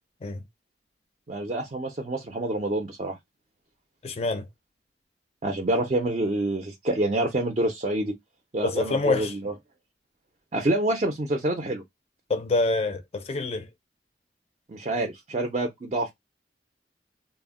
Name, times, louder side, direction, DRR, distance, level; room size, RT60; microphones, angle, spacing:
voice 1, 1.3-3.2 5.4-8.1 8.5-9.5 10.5-11.8 14.7-16.1, right 1 dB, 35° right, 0.4 m, -27 dB
voice 2, 4.0-4.5 8.6-9.3 12.3-13.7, left 3 dB, 35° left, 0.4 m, -26 dB
2.1 x 2.0 x 3.5 m
head